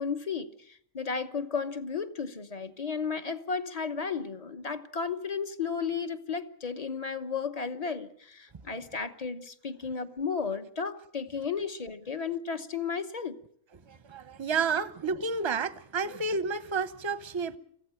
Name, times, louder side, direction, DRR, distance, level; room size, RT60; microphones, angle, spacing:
voice 1, 0.0-13.4, left 5 dB, 30° left, 1.0 m, -34 dB
voice 2, 13.9-17.6, right 4 dB, 25° right, 0.7 m, -30 dB
23.5 x 15.0 x 8.9 m
omnidirectional pair, 1.5 m